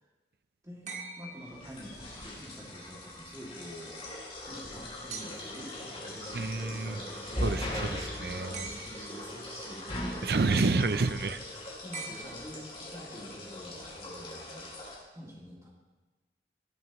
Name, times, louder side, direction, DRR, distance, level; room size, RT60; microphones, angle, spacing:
voice 1, 0.6-4.0 4.5-9.9 11.6-15.7, equal, 20° right, -4 dB, 2.4 m, -47 dB
sound 1, 0.9-2.2 5.1-5.7 8.5-9.3 11.9-13.0 14.6-14.7, right 4 dB, 40° right, 1.1 m, -44 dB
sound 2, 1.4-15.0, left 1 dB, 30° left, 3.2 m, -40 dB
voice 2, 6.3-7.0 7.4-7.9 8.2-8.6 10.2-11.4, right 3 dB, 60° right, 12 dB, 0.5 m, -28 dB
18.0 x 8.0 x 3.1 m, 1.2 s
head